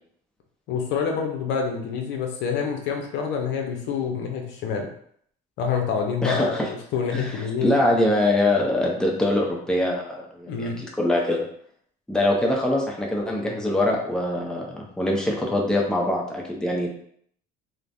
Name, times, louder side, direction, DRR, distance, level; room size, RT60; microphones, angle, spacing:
voice 1, 0.7-4.9 5.6-6.7 6.9-8.0 10.5-10.8, left 6 dB, 70° left, 2 dB, 0.6 m, -27 dB
voice 2, 6.2-6.7 7.1-7.3 7.6-11.4 12.1-16.9, left 1 dB, 5° left, -1 dB, 0.6 m, -23 dB
3.1 x 2.1 x 2.6 m, 0.64 s
supercardioid pair, 90°, 19 cm